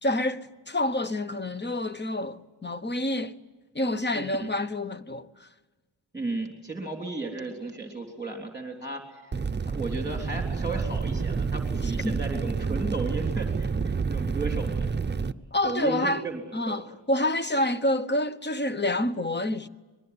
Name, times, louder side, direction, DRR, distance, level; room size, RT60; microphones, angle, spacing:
voice 1, 0.0-3.4 3.7-5.5 11.8-12.2 15.5-16.2 16.5-19.7, left 1 dB, 25° left, 1.0 m, -28 dB
voice 2, 4.1-4.5 6.1-14.9 15.6-16.9, right 3 dB, 10° right, 3.5 m, -35 dB
sound 1, 9.3-15.3, right 5 dB, 25° right, 0.7 m, -29 dB
25.0 x 21.5 x 9.8 m
wide cardioid pair, 100°, 44 cm